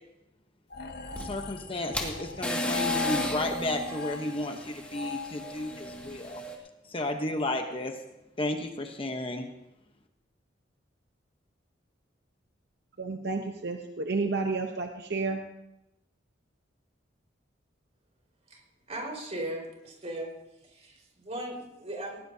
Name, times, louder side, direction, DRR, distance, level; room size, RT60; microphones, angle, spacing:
sound 1, 0.7-6.1, left 6 dB, 55° left, 1.3 m, -38 dB
sound 2, 1.1-6.5, equal, 5° left, 2.0 m, -35 dB
voice 1, 1.2-6.4 6.9-7.9 8.4-9.5, left 1 dB, 30° left, 5 dB, 1.0 m, -33 dB
voice 2, 13.0-15.4, right 3 dB, 55° right, 4 dB, 0.9 m, -31 dB
voice 3, 18.9-20.3 20.6-22.2, right 1 dB, 35° right, -1 dB, 4.5 m, -38 dB
19.0 x 17.5 x 2.8 m, 0.90 s
head